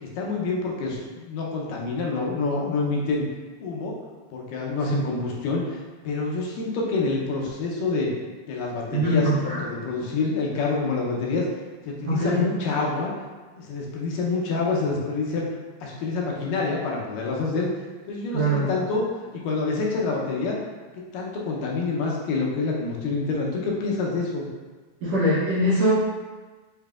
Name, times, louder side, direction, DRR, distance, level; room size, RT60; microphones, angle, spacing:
voice 1, 0.0-3.3 3.6-4.0 4.3-8.1 8.5-11.5 11.8-13.1 13.5-15.5 15.8-17.7 18.1-19.1 19.3-20.6 21.1-24.5, left 3 dB, 85° left, -2 dB, 2.3 m, -27 dB
voice 2, 8.9-9.6 12.1-12.4 18.3-18.7 25.0-25.9, equal, 70° right, -9 dB, 1.6 m, -22 dB
7.0 x 2.7 x 2.3 m, 1.3 s
omnidirectional pair, 3.8 m